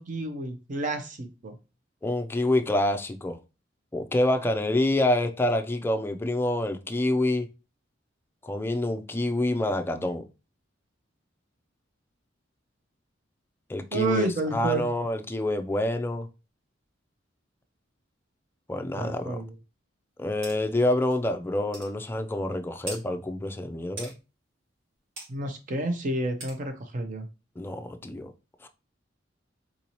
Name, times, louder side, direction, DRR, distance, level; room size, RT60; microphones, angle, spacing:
voice 1, 0.0-1.5 13.9-14.8 19.0-19.5 25.3-27.3, right 2 dB, 45° right, 0.5 m, -30 dB
voice 2, 2.0-3.4 3.9-7.5 8.4-10.2 13.7-16.3 18.7-19.4 20.2-24.1 27.6-28.3 28.6-28.7, left 1 dB, 10° left, 0.3 m, -27 dB
sound 1, 20.4-20.6 21.1-21.2 21.7-21.9 22.9-23.0 24.0-24.1 25.2-25.3 26.4-26.6, right 2 dB, 85° right, 2.0 m, -38 dB
3.7 x 2.7 x 2.9 m
head